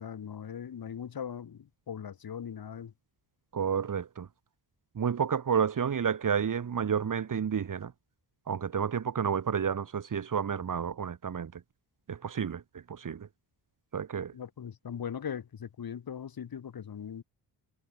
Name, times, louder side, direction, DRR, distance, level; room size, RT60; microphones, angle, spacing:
voice 1, 0.0-2.9 14.3-17.2, left 8 dB, 55° left, 7.2 m, -40 dB
voice 2, 3.5-4.3 4.9-7.9 8.5-11.6 12.1-13.3 13.9-14.3, right 7 dB, 45° right, 3.2 m, -30 dB
cardioid pair, 120°, 44 cm